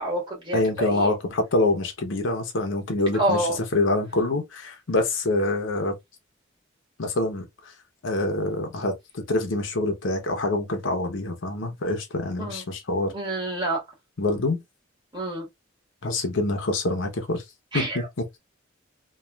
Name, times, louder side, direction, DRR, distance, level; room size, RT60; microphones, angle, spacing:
voice 1, 0.0-1.1 3.1-3.6 12.4-12.6 13.1-13.8 15.1-15.5 17.7-18.1, right 1 dB, 25° right, 1.4 m, -28 dB
voice 2, 0.5-5.9 7.0-7.5 8.0-13.1 14.2-14.6 16.0-17.4 17.7-18.0, left 2 dB, 70° left, 0.7 m, -25 dB
3.1 x 2.3 x 2.2 m
head